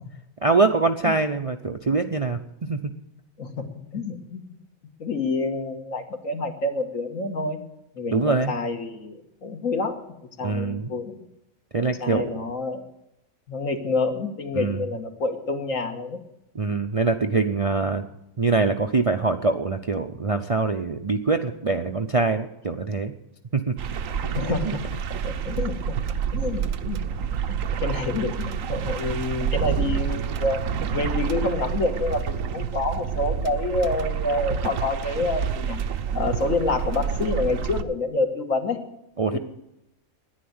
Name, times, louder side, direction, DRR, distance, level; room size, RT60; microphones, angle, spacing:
voice 1, 0.4-2.8 8.1-8.6 10.4-10.9 11.7-12.3 14.5-14.9 16.5-18.0 18.4-23.1 23.5-23.7 24.2-24.8 39.2-39.4, right 3 dB, 40° right, 5 dB, 0.5 m, -24 dB
voice 2, 3.4-4.4 5.0-7.6 7.9-10.0 10.4-11.1 11.8-12.9 13.5-16.2 24.3-24.8 25.2-26.0 26.3-27.0 27.5-30.6 30.9-35.8 36.1-38.8 39.3-39.4, left 3 dB, 70° left, 4 dB, 2.0 m, -28 dB
sound 1, 23.8-37.8, right 7 dB, 70° right, 1.1 m, -28 dB
10.5 x 10.5 x 9.5 m, 0.86 s
omnidirectional pair, 1.4 m